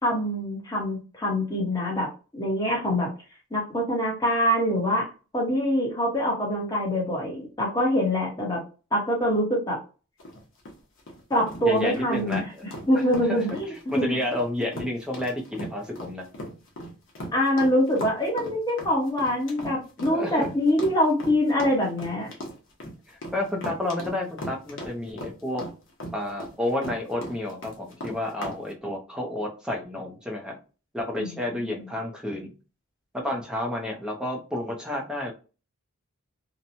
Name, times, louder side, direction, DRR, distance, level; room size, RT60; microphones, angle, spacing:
voice 1, 0.0-3.1 3.5-5.1 5.3-8.6 8.9-9.8 11.3-14.1 17.3-22.3 31.2-31.9, equal, 15° left, -2 dB, 1.0 m, -25 dB
sound 1, 10.2-28.6, equal, 60° left, 0.9 m, -37 dB
voice 2, 11.6-12.6 12.9-13.4 13.7-16.2 20.1-20.5 23.1-25.6 26.1-30.6 30.9-32.5 33.1-35.3, left 1 dB, 5° right, 1 dB, 0.6 m, -30 dB
2.9 x 2.2 x 2.6 m, 0.34 s
head